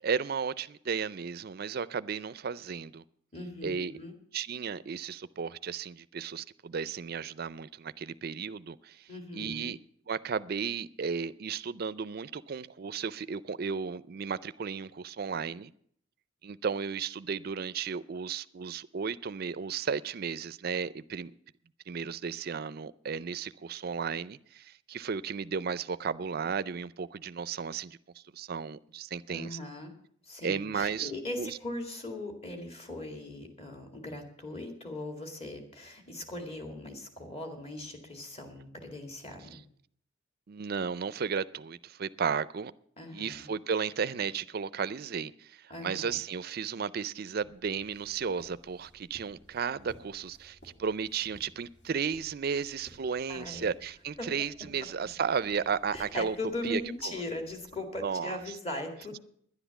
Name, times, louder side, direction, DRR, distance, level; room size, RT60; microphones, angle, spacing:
voice 1, 0.0-3.0 3.6-3.9 4.3-9.1 9.3-9.8 10.1-15.7 16.4-21.3 21.9-29.6 30.4-31.1 31.4-31.6 40.5-42.7 43.1-56.4 56.6-57.1 58.0-58.4, right 6 dB, 50° right, 0.4 m, -34 dB
voice 2, 3.3-4.1 9.1-9.7 29.3-29.9 30.2-39.6 43.0-43.5 45.7-46.2 53.3-53.7 54.2-54.3 55.9-59.2, left 1 dB, 30° left, 2.1 m, -39 dB
sound 1, 47.4-57.8, right 1 dB, 60° left, 2.4 m, -56 dB
10.5 x 10.0 x 7.1 m
head